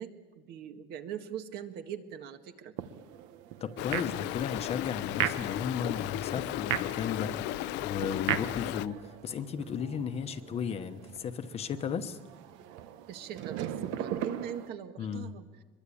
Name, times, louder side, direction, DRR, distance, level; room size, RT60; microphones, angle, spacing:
voice 1, 0.0-2.7 13.1-15.5, right 9 dB, 55° right, 1.9 m, -41 dB
sound 1, 2.8-14.7, right 11 dB, 80° right, 1.4 m, -38 dB
voice 2, 3.6-7.5 7.8-12.2 15.0-15.3, left 7 dB, 30° left, 1.1 m, -35 dB
Stream, 3.8-8.9, left 15 dB, 65° left, 0.7 m, -35 dB
25.0 x 22.5 x 8.7 m
cardioid pair, 175°, 19 cm